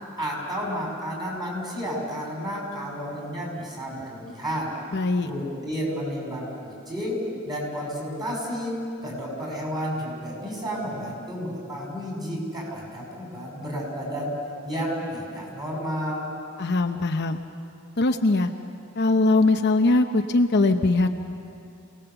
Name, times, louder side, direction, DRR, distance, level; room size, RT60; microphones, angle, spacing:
voice 1, 0.2-4.7 5.2-14.4 14.6-16.3, equal, 20° right, -2 dB, 6.5 m, -31 dB
voice 2, 4.9-5.3 16.6-17.4 18.0-18.5 19.0-21.1, left 2 dB, 50° left, 6 dB, 0.8 m, -21 dB
27.5 x 19.0 x 6.9 m, 2.5 s
head